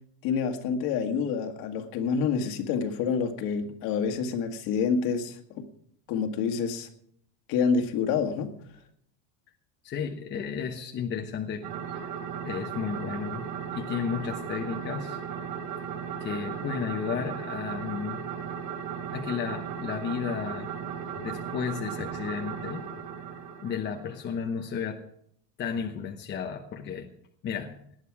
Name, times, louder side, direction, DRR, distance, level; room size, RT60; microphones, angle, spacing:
voice 1, 0.2-5.6 6.1-6.9 7.5-8.5, left 6 dB, 50° left, 6 dB, 1.9 m, -27 dB
voice 2, 9.8-12.0 12.4-15.2 16.2-18.2 19.1-20.7 21.1-22.8 23.6-25.0 25.6-27.1 27.4-27.9, left 7 dB, 25° left, 3 dB, 1.0 m, -33 dB
sound 1, 11.6-24.4, right 7 dB, 85° right, 4.3 m, -36 dB
18.5 x 11.0 x 4.8 m, 0.68 s
supercardioid pair, 160°, 45 cm